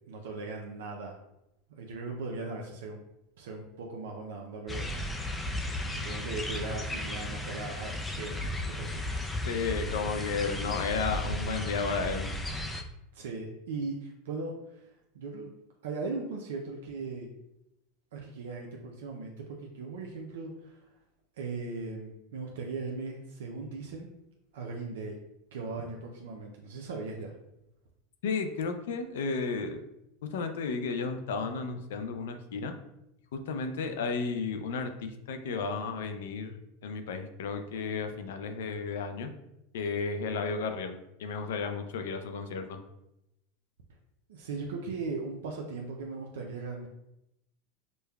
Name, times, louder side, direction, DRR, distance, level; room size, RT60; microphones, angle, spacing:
voice 1, 0.1-1.2 1.8-3.0 3.4-4.9 5.8-8.4 8.7-8.9 9.6-9.7 13.1-15.5 15.8-17.3 18.1-20.8 21.4-24.1 24.5-25.2 25.5-27.3 44.3-46.9, right 3 dB, 85° right, 0 dB, 0.4 m, -38 dB
sound 1, 4.7-12.8, left 1 dB, 15° left, 0.4 m, -35 dB
voice 2, 9.4-12.3 28.2-29.8 30.3-32.7 33.3-36.6 36.8-39.3 39.7-42.8, left 4 dB, 85° left, 7 dB, 0.4 m, -33 dB
5.1 x 2.2 x 2.3 m, 0.86 s
supercardioid pair, 125°, 0 cm